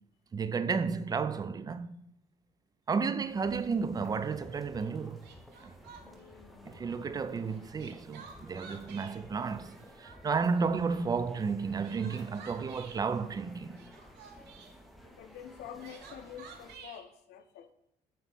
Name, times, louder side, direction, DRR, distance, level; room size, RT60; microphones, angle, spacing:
voice 1, 0.3-2.0 2.9-5.3 5.6-5.7 6.6-13.8, right 5 dB, 25° right, 0.3 m, -32 dB
sound 1, 3.2-16.8, equal, ahead, 0.7 m, -53 dB
Crying sobbing, 4.8-4.9 5.2-6.3 7.5-9.2 9.6-10.4 11.5-13.0 13.7-14.7 15.5-17.0, right 6 dB, 75° right, 1.1 m, -51 dB
voice 2, 6.0-6.9 15.1-17.7, left 9 dB, 75° left, 0.6 m, -48 dB
7.2 x 3.1 x 5.3 m
cardioid pair, 110°, 17 cm